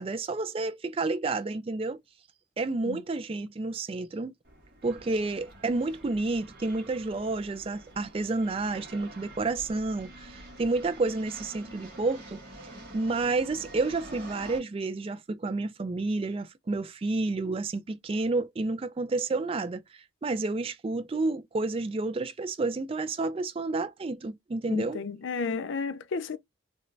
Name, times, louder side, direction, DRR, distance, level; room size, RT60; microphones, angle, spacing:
voice 1, 0.0-2.0 2.6-4.3 4.8-12.4 12.9-25.0, right 3 dB, 25° right, 0.3 m, -30 dB
sound 1, 4.4-14.6, right 1 dB, 50° right, 1.7 m, -47 dB
voice 2, 24.7-26.4, left 4 dB, 65° left, 0.4 m, -32 dB
3.3 x 2.5 x 3.1 m
head